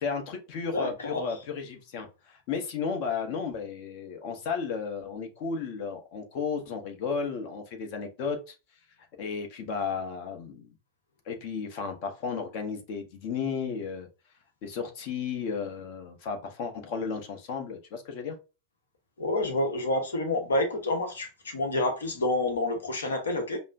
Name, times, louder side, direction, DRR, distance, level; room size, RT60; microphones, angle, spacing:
voice 1, 0.0-8.5 9.2-10.7 11.3-14.1 14.6-18.4, left 5 dB, 45° left, 0.9 m, -33 dB
voice 2, 0.7-1.3 19.2-23.6, left 2 dB, 70° left, 1.0 m, -28 dB
5.2 x 2.1 x 2.5 m
figure-of-eight pair, 90°, 0 cm